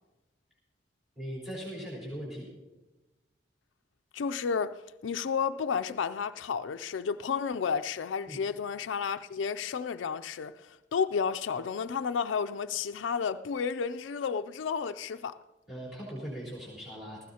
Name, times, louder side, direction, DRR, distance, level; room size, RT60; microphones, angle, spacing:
voice 1, 1.2-2.5 8.3-8.4 15.7-17.2, equal, ahead, 4.0 m, -39 dB
voice 2, 4.1-15.4, left 6 dB, 90° left, 0.4 m, -32 dB
19.5 x 15.0 x 2.8 m
head